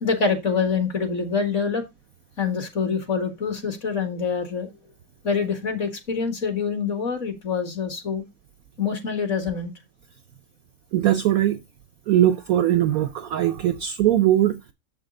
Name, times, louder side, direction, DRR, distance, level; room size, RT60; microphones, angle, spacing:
voice 1, 0.0-1.8 2.4-4.7 5.2-8.2 8.8-9.7, left 5 dB, 45° left, 1.7 m, -25 dB
voice 2, 10.9-11.6 12.1-14.6, right 12 dB, 70° right, 0.9 m, -20 dB
7.4 x 6.3 x 3.7 m
omnidirectional pair, 1.9 m